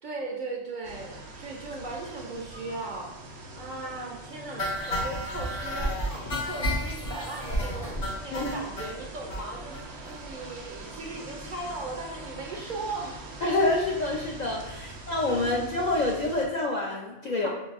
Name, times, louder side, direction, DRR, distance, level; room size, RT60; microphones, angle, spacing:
voice 1, 0.0-5.9 6.4-13.1 14.8-14.9 15.2-15.6 17.4-17.5, right 2 dB, 55° right, -1 dB, 0.5 m, -38 dB
sound 1, 0.8-16.5, right 2 dB, 70° right, 0.9 m, -43 dB
sound 2, 4.6-8.9 9.3-9.4 9.7-9.8 10.1-10.2 10.5-10.6, equal, 75° left, 1.4 m, -31 dB
voice 2, 8.3-8.7 13.4-17.5, left 2 dB, 60° left, -2 dB, 0.5 m, -27 dB
4.6 x 2.6 x 2.4 m, 0.96 s
omnidirectional pair, 1.1 m